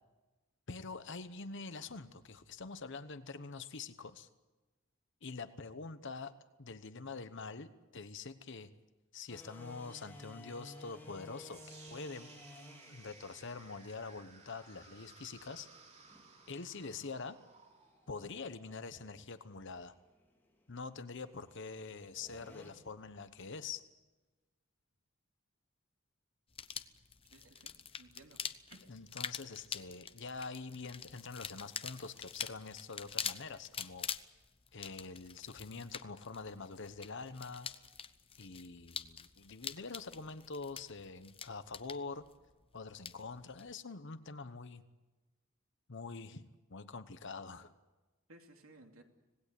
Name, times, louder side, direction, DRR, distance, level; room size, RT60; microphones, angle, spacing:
voice 1, 0.7-4.3 5.2-6.3 6.6-8.7 9.1-12.3 12.9-15.7 16.5-17.4 18.1-19.9 20.7-23.8 28.9-34.1 34.7-37.7 38.4-42.2 42.7-44.8 45.9-46.4 46.7-47.7, left 4 dB, 60° left, 11 dB, 1.1 m, -45 dB
sound 1, 9.3-22.7, left 1 dB, 10° left, 3.8 m, -57 dB
sound 2, 11.5-19.6, right 4 dB, 35° right, 3.0 m, -59 dB
sound 3, 26.5-43.7, left 7 dB, 25° left, 0.9 m, -45 dB
voice 2, 27.3-28.4 28.7-29.1 48.3-49.0, right 2 dB, 85° right, 3 dB, 3.0 m, -59 dB
26.0 x 19.0 x 8.3 m, 1.2 s
head